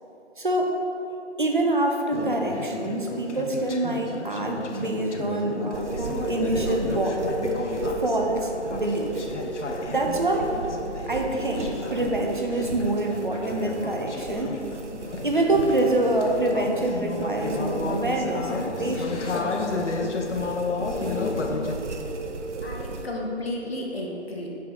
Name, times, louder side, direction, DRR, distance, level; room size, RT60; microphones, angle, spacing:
voice 1, 0.4-0.8 1.4-7.1 7.4-7.5 8.0-9.2 9.9-10.5 11.1-14.6 15.2-19.4, right 2 dB, 45° right, 2 dB, 0.6 m, -26 dB
Conversation / Chatter, 2.1-21.7, left 3 dB, 85° left, 0.8 m, -32 dB
sound 1, 5.7-23.1, right 2 dB, 80° right, 0.7 m, -35 dB
voice 2, 22.2-24.5, left 1 dB, 60° left, -1 dB, 1.3 m, -33 dB
6.7 x 5.1 x 3.9 m, 2.9 s
figure-of-eight pair, 170°, 35 cm